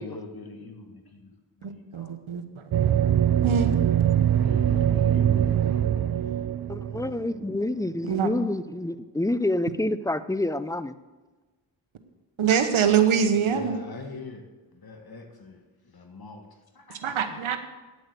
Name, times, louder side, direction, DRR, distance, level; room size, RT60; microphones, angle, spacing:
voice 1, 0.0-2.1 4.3-5.8 12.7-14.4 14.7-15.6 15.9-16.4 16.8-17.0 17.2-17.6, left 3 dB, 50° left, 4 dB, 1.7 m, -42 dB
voice 2, 1.6-2.6 3.4-3.7 8.1-8.3 12.4-13.8 17.0-17.6, right 7 dB, 85° right, 8 dB, 1.2 m, -24 dB
sound 1, 2.7-7.5, right 10 dB, 50° right, 0.5 m, -23 dB
voice 3, 6.7-10.9, left 1 dB, 5° left, 14 dB, 0.5 m, -28 dB
9.9 x 8.0 x 6.8 m, 1.2 s
cardioid pair, 50°, 47 cm